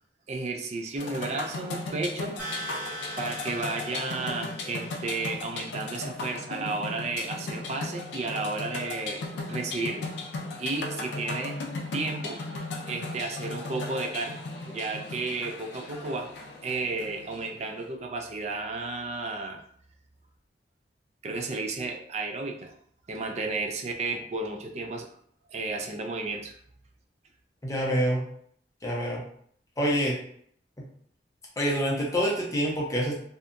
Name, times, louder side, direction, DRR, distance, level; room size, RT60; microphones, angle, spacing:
voice 1, 0.3-2.8 3.2-10.1 10.6-11.6 11.9-12.4 12.9-16.3 16.6-19.6 21.2-22.7 23.1-25.1 25.5-26.6, right 3 dB, 40° right, 4 dB, 0.3 m, -33 dB
sound 1, 1.0-17.8, left 2 dB, 80° left, 0.4 m, -36 dB
sound 2, 2.4-5.3, right 1 dB, 10° right, 0.8 m, -40 dB
voice 2, 27.6-28.2 28.8-29.2 29.8-30.1 31.6-33.1, equal, 20° left, -3 dB, 0.6 m, -26 dB
2.7 x 2.2 x 2.5 m, 0.64 s
head